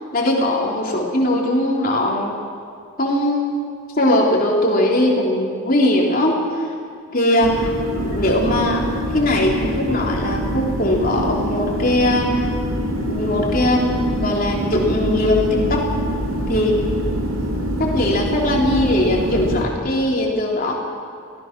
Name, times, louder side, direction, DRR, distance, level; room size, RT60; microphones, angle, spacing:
voice 1, 0.1-2.4 3.0-3.7 4.0-6.6 7.1-8.8 9.1-12.5 13.1-15.9 16.5-16.8 17.8-20.8, left 1 dB, 40° left, -1 dB, 3.7 m, -20 dB
sound 1, 7.4-19.6, equal, 80° right, 3.4 m, -24 dB
24.0 x 18.0 x 6.1 m, 2.3 s
head